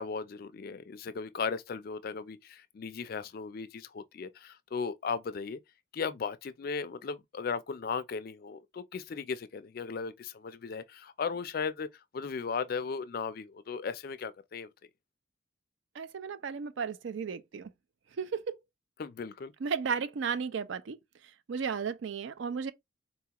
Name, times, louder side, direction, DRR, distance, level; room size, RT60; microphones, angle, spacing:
voice 1, 0.0-5.6 5.9-11.9 12.1-14.7 19.0-19.5, left 5 dB, 45° left, 0.3 m, -36 dB
voice 2, 16.0-17.7 18.2-18.6 19.6-21.0 21.5-22.7, right 6 dB, 65° right, 0.4 m, -34 dB
4.0 x 2.3 x 2.9 m
head